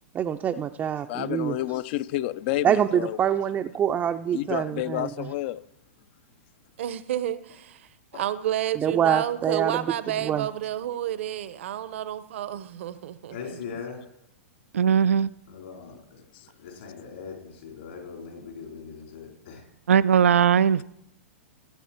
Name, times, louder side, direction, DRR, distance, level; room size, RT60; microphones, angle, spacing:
voice 1, 0.1-1.6 2.6-5.3 8.8-9.8 10.2-10.5, right 9 dB, 20° right, 0.5 m, -25 dB
voice 2, 1.1-3.2 4.3-5.6 8.1-8.2 16.3-16.5, left 15 dB, 50° left, 0.6 m, -30 dB
voice 3, 6.8-13.6, right 11 dB, 65° right, 0.8 m, -30 dB
voice 4, 13.3-14.0 15.5-16.2 16.6-19.6, left 6 dB, 65° left, 4.2 m, -40 dB
voice 5, 14.7-15.3 19.9-20.8, right 7 dB, 80° right, 0.4 m, -19 dB
16.0 x 8.4 x 4.4 m
hypercardioid pair, 115°, 7 cm